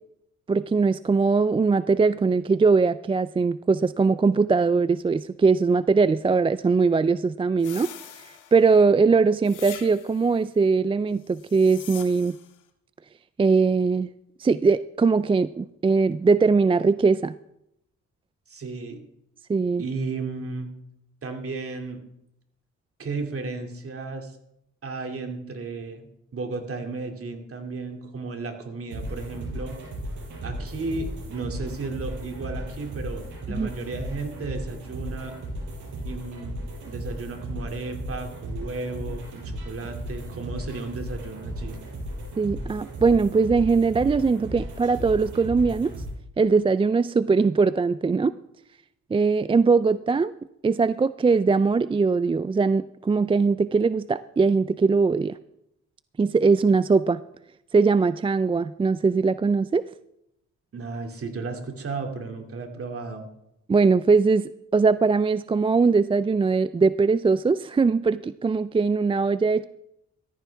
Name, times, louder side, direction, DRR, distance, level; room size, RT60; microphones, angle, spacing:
voice 1, 0.5-7.9 8.5-12.4 13.4-14.1 14.4-17.3 19.5-19.8 33.5-33.7 42.4-45.9 46.4-48.3 49.1-50.3 50.6-55.4 56.2-57.2 57.7-59.8 63.7-69.6, right 4 dB, 20° right, 15 dB, 0.4 m, -21 dB
sound 1, 7.6-8.8 9.4-10.3 11.3-12.5, left 10 dB, 85° left, 1.6 m, -43 dB
voice 2, 18.5-19.0 19.8-20.7 21.2-22.0 23.0-24.4 24.8-29.8 30.4-35.3 36.0-36.6 36.8-41.8 60.7-63.3, right 3 dB, 45° right, 4 dB, 2.6 m, -34 dB
sound 2, 28.9-46.1, right 1 dB, 75° right, 5.3 m, -35 dB
14.5 x 14.0 x 3.5 m, 0.81 s
cardioid pair, 70°, 30 cm